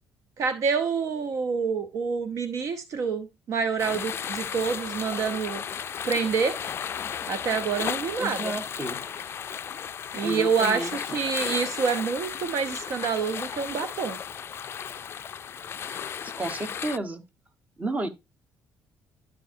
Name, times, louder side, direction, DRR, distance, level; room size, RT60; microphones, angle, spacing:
voice 1, 0.4-5.6 6.0-6.6 7.3-8.5 10.1-14.2, right 5 dB, 60° right, 0.8 m, -27 dB
sound 1, 3.8-17.0, left 8 dB, 45° left, 0.3 m, -34 dB
voice 2, 8.2-9.0 10.2-11.2 16.2-17.2 17.8-18.1, right 2 dB, 25° right, 1.3 m, -32 dB
12.0 x 4.6 x 2.7 m
supercardioid pair, 80°, 6 cm